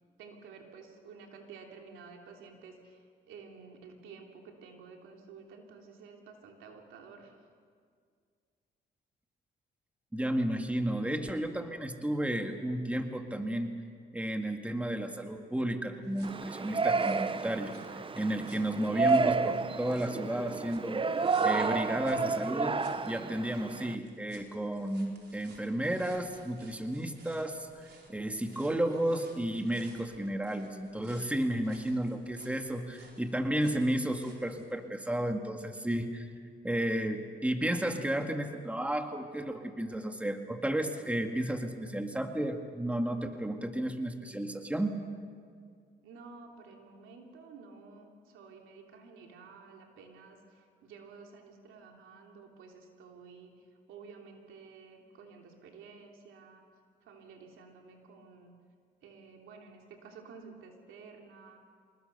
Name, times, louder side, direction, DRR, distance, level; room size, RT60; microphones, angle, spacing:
voice 1, 0.2-7.4 46.0-56.6 57.0-58.5 59.0-61.6, right 5 dB, 90° right, 2 dB, 3.1 m, -52 dB
voice 2, 10.1-13.7 14.1-22.8 23.1-36.3 36.6-45.0, right 1 dB, 5° right, 5 dB, 1.9 m, -33 dB
sound 1, 16.0-34.7, right 4 dB, 55° right, 4.6 m, -60 dB
Yell, 16.2-23.9, right 4 dB, 25° right, 0.8 m, -31 dB
26.0 x 20.5 x 6.8 m, 2.1 s
cardioid pair, 90°, 20 cm